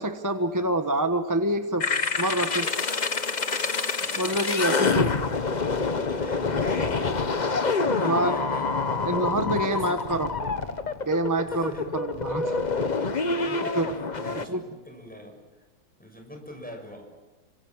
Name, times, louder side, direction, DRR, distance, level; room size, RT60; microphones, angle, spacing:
voice 1, 0.0-1.8 2.2-2.7 4.2-5.1 8.0-8.4 9.0-10.3 11.0-12.6 13.8-13.9 14.5-14.6, right 1 dB, 10° right, 6 dB, 0.9 m, -26 dB
sound 1, 1.8-14.5, left 4 dB, 40° left, 0.6 m, -27 dB
voice 2, 4.0-5.6 6.1-7.4 7.9-8.7 9.3-10.2 11.5-11.9 12.9-15.4 16.0-17.1, equal, 5° left, 2 dB, 6.6 m, -42 dB
27.5 x 25.5 x 7.4 m, 1.2 s
omnidirectional pair, 2.4 m